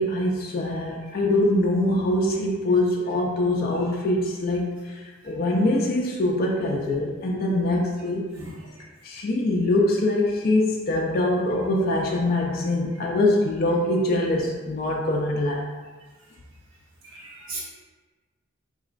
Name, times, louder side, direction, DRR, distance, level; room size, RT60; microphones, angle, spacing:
voice 1, 0.0-8.3 9.0-15.7, left 1 dB, 50° left, -2 dB, 0.4 m, -23 dB
voice 2, 17.0-17.6, right 3 dB, 70° right, -8 dB, 1.3 m, -37 dB
4.0 x 3.0 x 2.5 m, 1.3 s
head